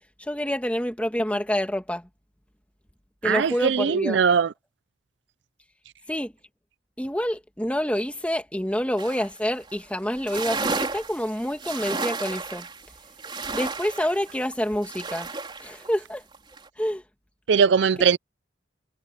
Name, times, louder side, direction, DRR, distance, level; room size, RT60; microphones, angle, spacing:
voice 1, 0.2-2.1 3.2-4.2 6.1-6.3 7.0-12.7 13.5-15.3 15.6-16.2 16.8-17.0, equal, 5° left, 2.4 m, -27 dB
voice 2, 3.2-4.5 17.5-18.2, right 6 dB, 70° right, 0.4 m, -20 dB
sound 1, 9.0-9.4 9.7-9.8 10.1-15.9 16.3-16.7, right 3 dB, 25° right, 4.1 m, -33 dB
head